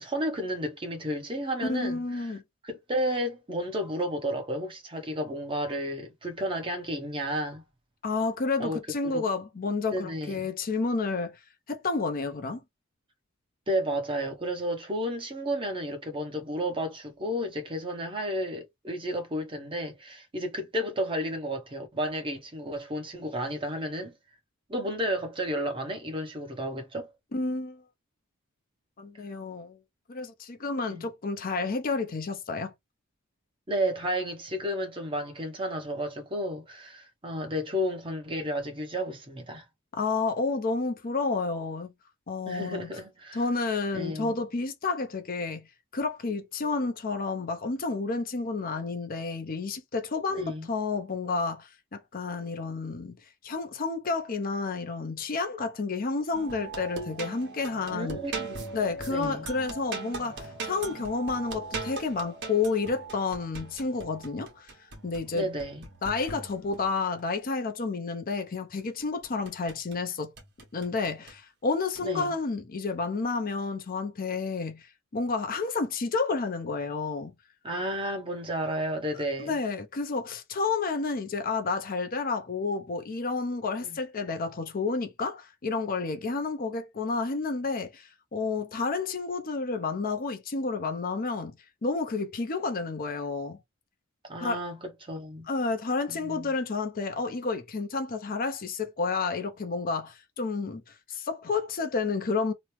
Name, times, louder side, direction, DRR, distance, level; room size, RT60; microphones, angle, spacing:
voice 1, 0.0-2.3 2.6-7.6 8.6-9.2 9.9-10.5 13.7-24.1 24.7-27.1 30.9-31.1 33.7-39.6 42.5-43.4 43.9-44.3 50.3-50.7 57.9-58.7 59.1-59.5 65.3-65.9 72.0-72.3 77.6-79.5 83.8-84.0 94.3-95.5 96.1-96.5, equal, 25° right, 1.0 m, -32 dB
voice 2, 1.6-2.4 8.0-11.4 11.7-12.6 27.3-27.8 29.0-29.8 30.1-32.7 39.9-41.9 42.3-42.9 43.3-45.6 45.9-53.2 53.4-58.2 58.7-64.7 65.0-65.5 66.0-70.3 70.7-77.3 79.4-91.5 91.8-93.6 94.4-94.6 95.5-102.5, left 4 dB, 45° left, 0.6 m, -30 dB
Vivace con screamo - No Solo, 56.3-67.0 68.8-70.0 70.4-71.4 72.0-72.3, right 3 dB, 60° right, 1.2 m, -40 dB
3.0 x 2.0 x 3.0 m
head